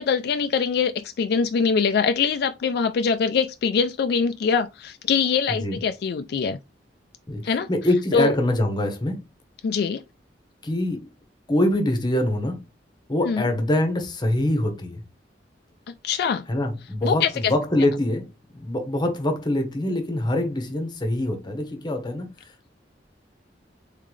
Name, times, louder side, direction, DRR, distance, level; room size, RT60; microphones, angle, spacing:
voice 1, 0.0-6.6 7.4-7.7 8.1-8.3 9.6-10.0 13.3-13.5 16.0-16.5 17.0-17.5, left 6 dB, 60° left, 0.3 m, -23 dB
voice 2, 5.5-5.8 7.3-9.2 10.6-11.1 11.5-12.6 13.1-15.0 16.5-22.7, left 1 dB, 25° left, 0.9 m, -24 dB
3.8 x 3.7 x 3.2 m
head